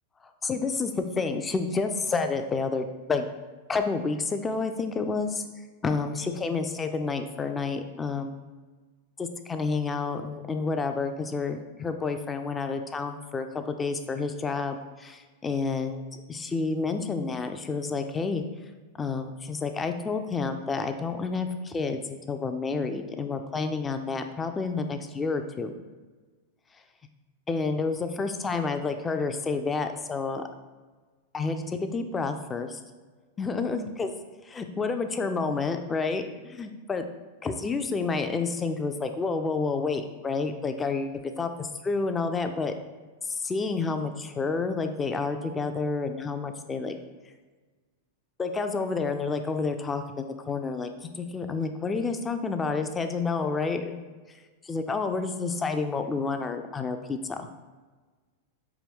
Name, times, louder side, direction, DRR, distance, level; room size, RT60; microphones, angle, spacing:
voice 1, 0.4-3.3 3.7-5.4 5.8-8.4 9.2-18.4 19.0-25.8 27.5-30.4 31.3-32.8 33.4-34.1 34.4-37.0 37.4-42.7 43.2-47.0 48.4-50.9 51.2-54.2 54.6-57.5, left 4 dB, 20° left, 7 dB, 0.3 m, -29 dB
4.6 x 2.2 x 3.5 m, 1.4 s
hypercardioid pair, 115°, 0 cm